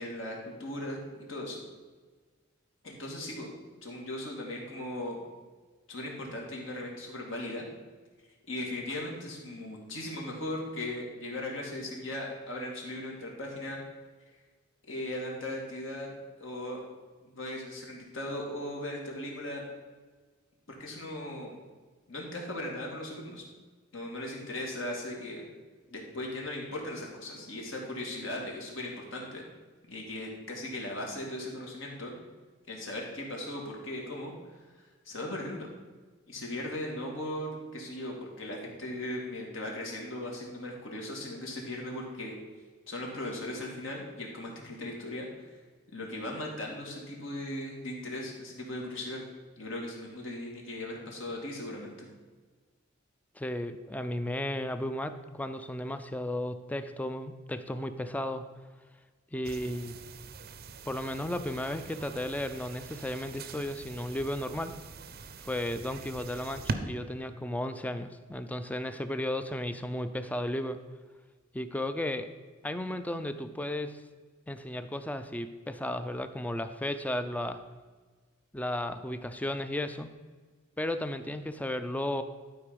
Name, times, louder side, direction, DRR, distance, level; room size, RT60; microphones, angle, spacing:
voice 1, 0.0-1.6 2.8-3.5 3.8-5.2 5.9-7.7 8.5-13.8 14.9-16.8 17.2-19.6 20.7-21.6 22.1-23.4 23.9-25.4 25.9-29.4 29.9-32.1 32.7-34.3 35.1-35.7 36.3-42.4 42.9-45.5 45.9-49.2 49.6-52.1, left 1 dB, 70° left, -1 dB, 2.1 m, -38 dB
voice 2, 53.4-58.5 59.3-60.0 60.9-64.7 65.4-70.8 71.5-72.3 72.6-74.0 74.5-77.6 78.5-80.1 80.8-82.2, left 1 dB, 10° left, 10 dB, 0.4 m, -34 dB
sound 1, 59.4-66.7, right 4 dB, 50° right, 0.6 m, -42 dB
11.5 x 4.6 x 5.1 m, 1.4 s
head